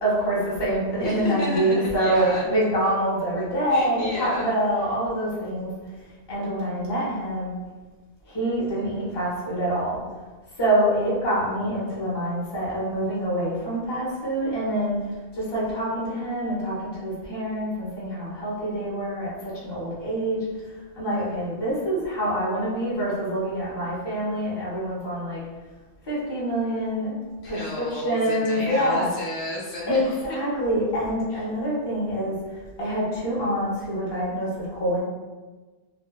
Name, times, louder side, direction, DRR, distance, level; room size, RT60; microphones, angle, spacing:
voice 1, 0.0-5.7 6.3-7.5 8.3-10.0 10.6-15.0 15.3-20.5 20.9-25.4 26.0-27.2 27.5-29.1 29.9-32.3 32.8-35.0, right 1 dB, 25° left, -7 dB, 0.7 m, -26 dB
voice 2, 1.0-2.4 3.7-4.5 27.4-30.4 31.3-31.4, left 2 dB, 75° left, -4 dB, 0.8 m, -32 dB
2.7 x 2.3 x 2.2 m, 1.3 s
omnidirectional pair, 1.2 m